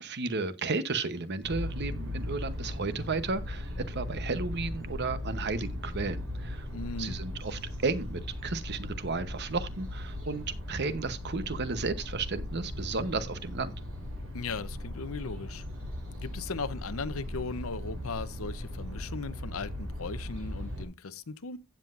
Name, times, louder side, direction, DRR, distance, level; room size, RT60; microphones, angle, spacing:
voice 1, 0.0-6.7 7.0-13.7, right 3 dB, 50° right, 0.9 m, -33 dB
sound 1, 1.4-20.8, left 1 dB, 65° right, 6.1 m, -38 dB
voice 2, 6.7-7.2 14.3-15.6 16.2-21.6, left 4 dB, 70° left, 0.8 m, -37 dB
15.5 x 7.6 x 2.5 m
head